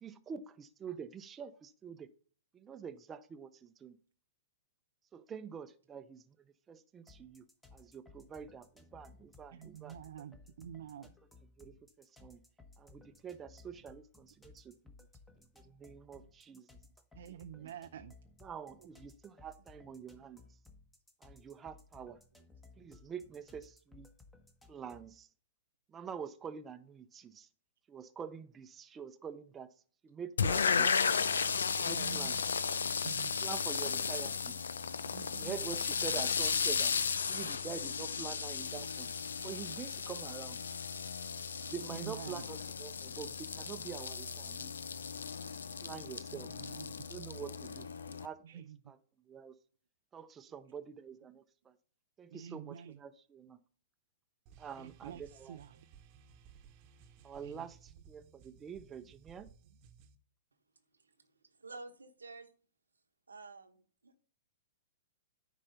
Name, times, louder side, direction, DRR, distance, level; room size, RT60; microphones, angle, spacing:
voice 1, 0.0-2.1 2.5-4.0 5.1-7.5 7.7-10.3 11.0-11.1 11.6-12.4 12.8-15.0 15.5-16.7 17.3-17.7 18.4-20.5 21.2-22.2 22.8-24.1 24.7-25.3 25.9-27.5 27.9-29.7 30.0-30.9 31.7-32.4 33.2-34.7 35.3-36.9 37.3-39.1 39.4-40.6 41.6-45.0 45.8-46.5 47.1-49.0 49.2-49.5 50.1-51.8 52.2-53.6 54.6-55.6 57.2-59.5, right 7 dB, 20° right, 0.7 m, -46 dB
sound 1, 7.1-25.2, left 3 dB, 10° left, 1.3 m, -60 dB
voice 2, 9.5-11.1 17.2-18.1 32.0-32.3 33.0-33.4 35.1-35.5 41.9-42.4 46.3-46.9 48.1-48.2 48.4-48.8 52.3-53.0 54.8-55.2 55.5-55.9 57.4-57.7, right 9 dB, 65° right, 0.4 m, -47 dB
sound 2, 30.4-48.3, left 6 dB, 80° left, 0.5 m, -35 dB
sound 3, 54.5-60.2, right 7 dB, 40° right, 1.0 m, -59 dB
voice 3, 60.9-62.5 63.3-64.2, right 3 dB, 90° right, 1.1 m, -51 dB
9.9 x 4.2 x 5.6 m
hypercardioid pair, 115°, 0 cm